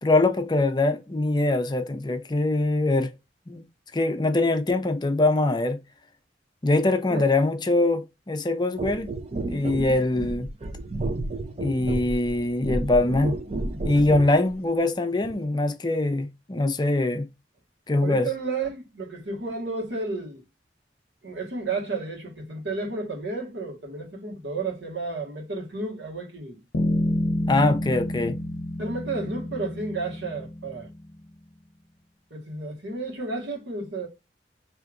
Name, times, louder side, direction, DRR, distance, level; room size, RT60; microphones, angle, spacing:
voice 1, 0.0-3.1 3.5-3.6 3.9-5.8 6.6-9.1 9.4-10.5 11.6-13.4 13.8-17.3 17.9-18.3 27.5-28.4, left 2 dB, 25° left, 0.5 m, -23 dB
sound 1, 8.8-14.4 15.2-15.4, right 2 dB, 35° right, 0.5 m, -31 dB
voice 2, 18.0-20.4 21.2-26.6 28.8-30.9 32.3-34.1, right 3 dB, 85° right, 1.4 m, -32 dB
Bass guitar, 26.7-31.2, left 1 dB, 65° left, 0.6 m, -29 dB
4.7 x 2.8 x 2.5 m
head